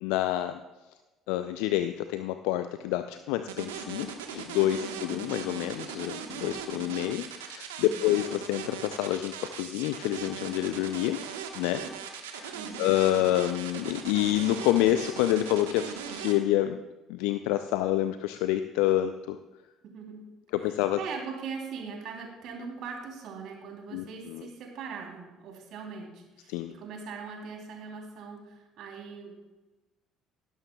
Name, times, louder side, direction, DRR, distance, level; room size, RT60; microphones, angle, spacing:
voice 1, 0.0-0.6 1.3-11.2 11.6-11.8 12.2-16.8 17.1-19.4 20.5-21.0 23.9-24.4 26.5-26.7, left 14 dB, 70° left, 10 dB, 0.5 m, -28 dB
sound 1, 3.5-16.3, right 8 dB, 80° right, 1.3 m, -39 dB
voice 2, 4.9-5.4 7.8-8.2 12.5-13.0 19.9-20.3 20.6-29.3, right 5 dB, 60° right, 0 dB, 3.3 m, -41 dB
17.5 x 12.0 x 2.3 m, 1.1 s
hypercardioid pair, 55°, 0 cm